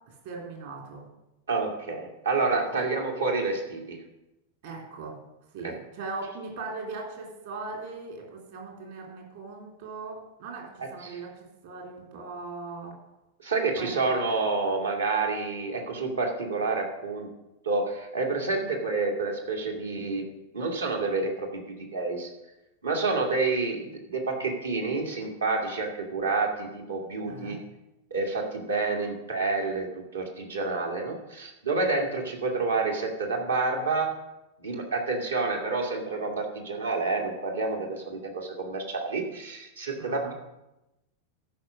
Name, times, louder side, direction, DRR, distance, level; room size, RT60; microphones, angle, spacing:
voice 1, 0.1-1.0 2.8-2.9 4.6-5.2 5.5-10.6 10.9-11.3 11.6-12.9 13.8-13.9 27.3-27.6 40.0-40.3, right 3 dB, 55° right, 0 dB, 3.3 m, -39 dB
voice 2, 1.5-4.0 5.6-5.8 10.8-11.2 13.4-17.3 17.6-20.3 20.5-21.6 21.9-22.3 22.8-27.6 28.1-29.9 30.1-34.1 34.6-40.3, right 3 dB, 70° right, 1 dB, 2.1 m, -29 dB
13.5 x 5.6 x 6.3 m, 0.94 s
figure-of-eight pair, 90°, 0 cm